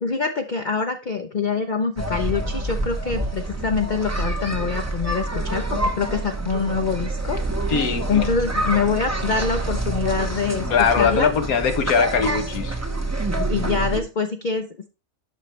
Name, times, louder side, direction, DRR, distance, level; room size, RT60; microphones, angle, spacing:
voice 1, 0.0-7.4 8.1-10.7 11.0-11.3 13.5-14.9, left 5 dB, 45° left, 0.6 m, -25 dB
sound 1, 2.0-14.0, right 2 dB, 15° right, 0.7 m, -27 dB
voice 2, 7.7-8.3 10.7-12.8, left 6 dB, 75° left, 1.3 m, -21 dB
12.0 x 4.0 x 3.2 m
omnidirectional pair, 1.6 m